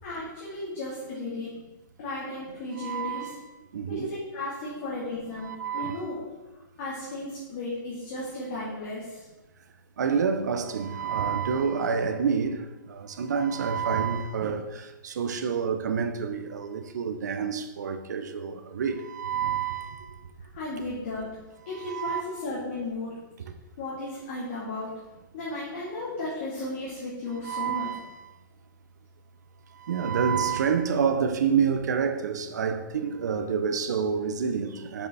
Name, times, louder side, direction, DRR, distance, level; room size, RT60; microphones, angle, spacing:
voice 1, 0.0-1.5 2.0-3.3 3.9-6.2 6.8-9.2 20.5-21.3 21.7-23.1 23.8-24.9 25.3-27.9, left 2 dB, 35° left, 1.9 m, -34 dB
voice 2, 2.8-3.4 3.7-4.1 5.4-6.0 10.0-20.1 21.8-22.2 27.4-28.0 29.8-35.1, right 6 dB, 55° right, 0.8 m, -28 dB
6.7 x 5.4 x 4.1 m
hypercardioid pair, 170°, 11 cm